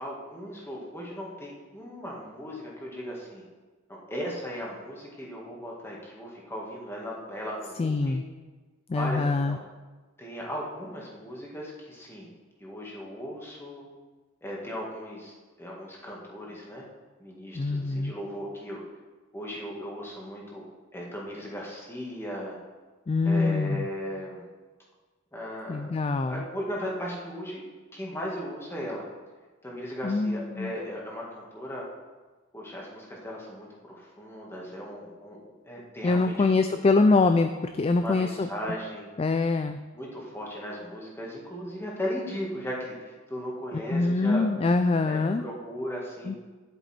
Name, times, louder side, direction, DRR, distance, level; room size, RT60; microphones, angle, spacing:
voice 1, 0.0-3.4 4.1-8.2 8.9-9.6 10.2-12.3 12.6-13.9 14.4-16.8 17.2-18.8 19.3-20.6 20.9-22.6 23.2-24.4 25.3-27.6 27.9-29.0 29.6-31.9 32.5-35.4 35.6-36.8 37.9-39.1 39.9-44.4 45.0-46.3, equal, 10° left, -3 dB, 1.9 m, -37 dB
voice 2, 7.8-8.2 8.9-9.6 17.5-18.1 23.1-23.9 25.7-26.4 30.0-30.7 36.0-38.5 39.2-39.8 43.9-45.4 46.3-46.4, left 3 dB, 30° left, 8 dB, 0.3 m, -24 dB
10.0 x 8.1 x 4.4 m, 1.3 s
head